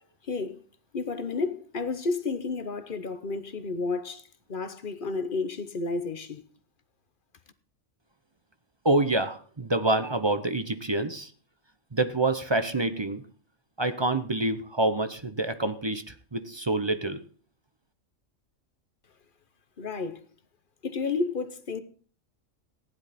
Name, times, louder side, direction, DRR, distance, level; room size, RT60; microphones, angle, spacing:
voice 1, 0.2-0.6 0.9-6.4 19.8-20.3 20.8-21.8, left 4 dB, 45° left, 1.1 m, -31 dB
voice 2, 8.8-11.3 11.9-13.2 13.8-17.2, right 2 dB, 25° right, 0.7 m, -27 dB
15.5 x 10.5 x 4.2 m
omnidirectional pair, 1.4 m